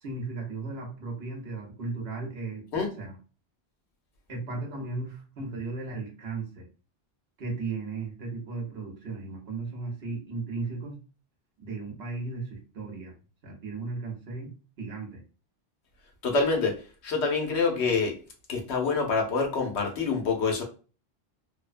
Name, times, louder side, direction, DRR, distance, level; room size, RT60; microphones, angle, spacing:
voice 1, 0.0-2.6 3.0-3.2 4.3-6.7 7.4-11.0 11.6-13.1 13.4-15.2, right 3 dB, 65° right, 1.1 m, -36 dB
voice 2, 16.2-16.8 17.0-18.2 18.5-20.6, left 4 dB, 85° left, 1.0 m, -26 dB
2.7 x 2.1 x 2.4 m
omnidirectional pair, 1.1 m